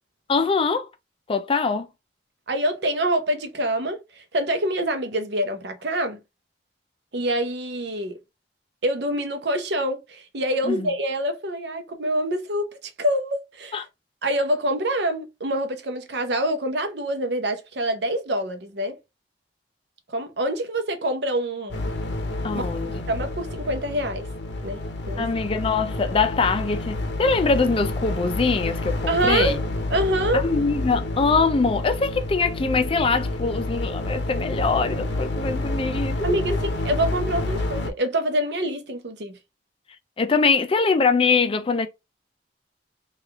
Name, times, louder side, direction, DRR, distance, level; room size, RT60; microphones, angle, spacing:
voice 1, 0.3-0.9 1.3-1.9 10.6-10.9 13.7-13.8 22.4-23.0 25.2-29.6 30.3-36.6 40.2-41.9, left 4 dB, 30° left, 0.4 m, -23 dB
voice 2, 2.5-6.2 7.1-8.2 8.8-13.8 14.2-19.0 20.1-21.8 22.5-22.7 23.1-24.3 24.6-24.8 25.1-25.3 29.1-29.6 29.9-30.5 36.2-36.5 36.8-39.4, right 1 dB, 70° right, 0.7 m, -26 dB
sound 1, 21.7-37.9, left 2 dB, 85° left, 0.7 m, -29 dB
3.2 x 2.4 x 3.5 m
head